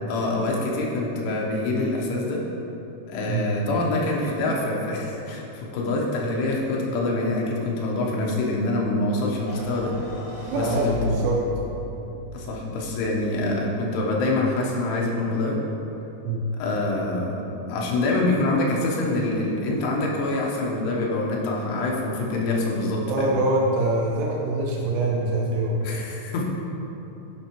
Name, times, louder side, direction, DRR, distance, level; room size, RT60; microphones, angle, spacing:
voice 1, 0.1-2.4 3.1-9.9 10.5-11.2 12.3-15.6 16.6-23.3 25.8-26.4, left 2 dB, 80° left, -2 dB, 3.0 m, -25 dB
sound 1, 9.4-13.8, left 2 dB, 65° left, 1.3 m, -36 dB
voice 2, 10.5-11.5 16.2-16.5 23.1-25.8, right 2 dB, 90° right, -2 dB, 2.9 m, -24 dB
10.0 x 5.3 x 3.0 m, 3.0 s
omnidirectional pair, 4.8 m